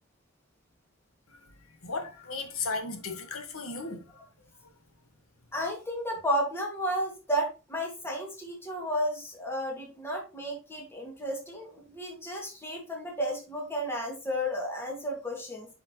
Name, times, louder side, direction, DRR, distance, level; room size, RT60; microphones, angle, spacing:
voice 1, 1.8-4.3, left 3 dB, 85° left, 1.6 m, -35 dB
voice 2, 5.5-15.7, equal, 10° left, 2.1 m, -32 dB
8.6 x 5.6 x 3.1 m
head